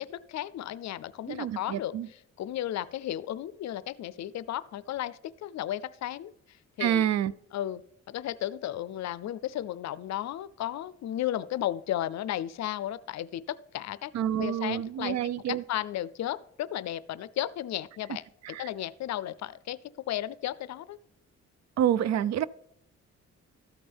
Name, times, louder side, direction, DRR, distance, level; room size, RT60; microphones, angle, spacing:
voice 1, 0.0-2.0 2.4-6.3 6.8-7.1 7.5-7.8 8.1-14.1 14.4-15.2 15.5-18.2 18.6-19.8 20.1-21.0, left 12 dB, 70° left, 18 dB, 0.5 m, -34 dB
voice 2, 1.3-2.1 6.8-7.3 14.1-15.6 18.4-18.7 21.8-22.5, right 10 dB, 65° right, 21 dB, 0.4 m, -28 dB
13.5 x 8.8 x 3.5 m, 0.78 s
cardioid pair, 110°, 29 cm